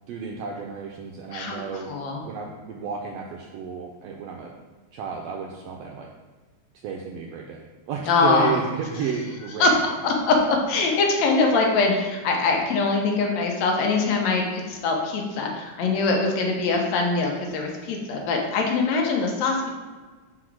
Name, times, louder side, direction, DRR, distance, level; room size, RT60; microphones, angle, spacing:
voice 1, 0.1-1.9 2.2-4.5 4.9-6.1 6.8-9.8, right 6 dB, 80° right, 1 dB, 1.4 m, -32 dB
voice 2, 1.3-1.6 1.9-2.2 8.1-8.5 9.6-9.7 10.0-19.7, left 3 dB, 75° left, 1 dB, 2.1 m, -23 dB
4.9 x 4.2 x 6.0 m, 1.3 s
omnidirectional pair, 3.3 m